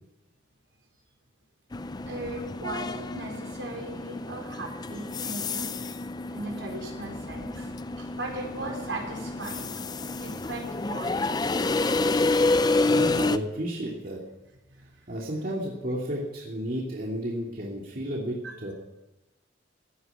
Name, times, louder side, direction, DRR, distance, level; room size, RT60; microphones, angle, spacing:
sound 1, 1.7-13.4, left 3 dB, 20° left, 0.4 m, -29 dB
voice 1, 2.1-5.8 6.3-7.7 8.0-9.8 10.1-11.3 11.9-12.8 14.7-15.0 18.4-18.5, right 2 dB, 75° right, 0 dB, 4.5 m, -38 dB
voice 2, 12.9-14.2 15.1-18.7, equal, 45° right, -3 dB, 2.6 m, -32 dB
16.0 x 9.8 x 9.1 m, 1.0 s
head